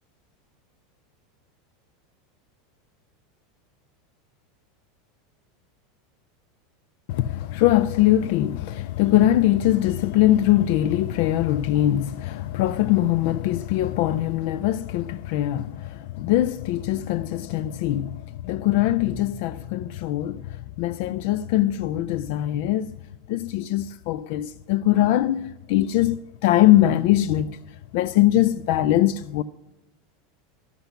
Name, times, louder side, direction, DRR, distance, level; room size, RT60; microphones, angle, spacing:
voice 1, 7.1-22.9 23.3-27.6 27.9-29.4, left 13 dB, 65° left, 0.3 m, -22 dB
11.5 x 8.0 x 6.8 m
supercardioid pair, 140°, 0 cm